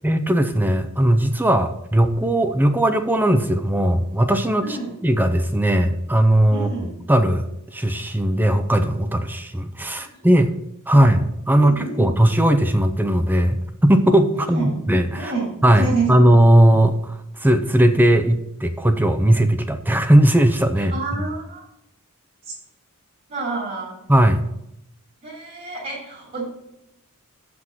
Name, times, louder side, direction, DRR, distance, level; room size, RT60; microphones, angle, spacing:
voice 1, 0.0-4.8 5.0-6.7 7.1-7.5 7.7-10.5 10.9-11.2 11.5-15.3 15.6-21.2 24.1-24.4, right 1 dB, 10° right, 8 dB, 0.6 m, -18 dB
voice 2, 4.6-4.9 6.5-6.9 9.9-10.2 10.9-11.1 11.5-12.1 14.5-14.8 15.2-16.2 20.9-21.6 22.4-22.6 23.3-24.0 25.2-26.5, right 3 dB, 40° right, -5 dB, 2.9 m, -29 dB
7.5 x 6.0 x 6.4 m, 0.82 s
head